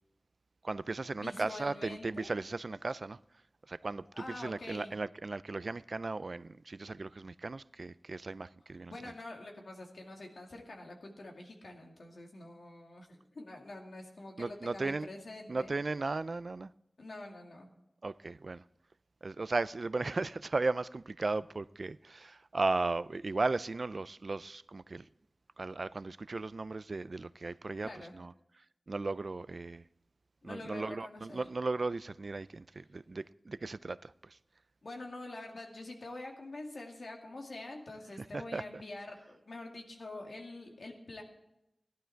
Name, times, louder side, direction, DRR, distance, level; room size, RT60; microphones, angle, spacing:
voice 1, 0.6-3.2 3.7-9.1 14.4-15.1 15.5-16.7 18.0-18.6 19.2-25.1 25.6-29.8 30.4-34.4 38.2-38.8, right 3 dB, 65° right, 0.4 m, -36 dB
voice 2, 1.2-2.3 4.2-4.9 8.9-15.7 17.0-17.7 27.8-28.2 30.4-31.4 34.8-41.2, left 2 dB, 85° left, 2.2 m, -46 dB
15.0 x 11.5 x 4.5 m
wide cardioid pair, 55°, 0 cm